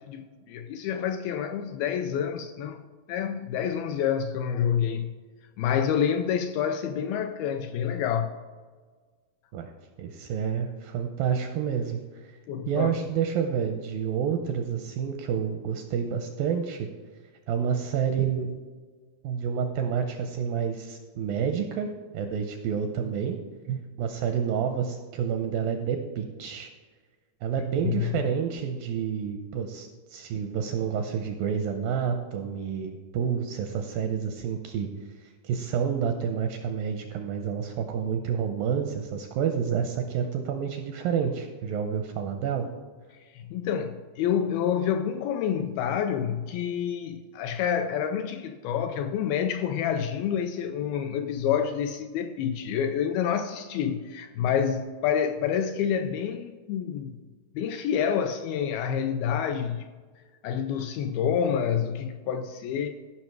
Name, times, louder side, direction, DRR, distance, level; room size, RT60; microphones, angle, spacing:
voice 1, 0.0-2.8 3.1-5.2 5.6-8.3 12.5-13.0 27.8-28.2 43.1-57.2 57.6-59.9 60.4-62.9, left 8 dB, 80° left, 2.2 m, -28 dB
voice 2, 10.0-12.4 12.7-16.9 17.5-18.5 19.2-21.9 22.1-23.4 23.7-26.7 27.4-34.9 35.2-42.7, right 7 dB, 85° right, 2.1 m, -29 dB
14.5 x 5.8 x 4.6 m
omnidirectional pair, 4.7 m